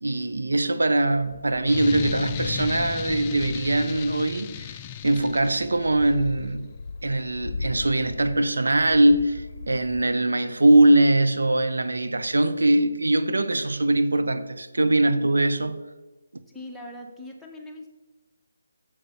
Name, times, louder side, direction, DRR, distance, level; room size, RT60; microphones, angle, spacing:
voice 1, 0.0-4.8 5.0-6.7 7.0-15.8, right 1 dB, 75° right, 0.7 m, -22 dB
sound 1, 1.1-10.1, left 4 dB, 55° left, 0.7 m, -39 dB
sound 2, 1.7-6.1, left 10 dB, 25° left, 0.4 m, -35 dB
voice 2, 16.5-17.9, left 1 dB, ahead, 1.0 m, -41 dB
7.5 x 6.8 x 5.7 m
figure-of-eight pair, 150°, 0 cm